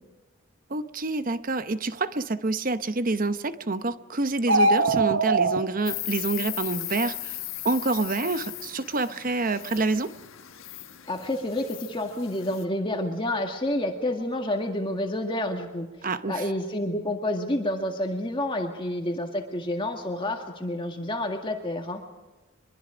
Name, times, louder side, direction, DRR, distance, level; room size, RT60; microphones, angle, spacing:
voice 1, 0.7-7.4 7.6-10.1 16.0-16.5, right 3 dB, 40° right, 12 dB, 0.9 m, -27 dB
sound 1, 4.4-5.6, right 2 dB, 65° right, 1.3 m, -21 dB
Insect, 5.9-12.6, left 15 dB, 70° left, 1.5 m, -37 dB
voice 2, 11.1-15.9 16.3-22.0, left 1 dB, 25° left, 4 dB, 1.9 m, -29 dB
24.0 x 23.0 x 5.1 m, 1.2 s
head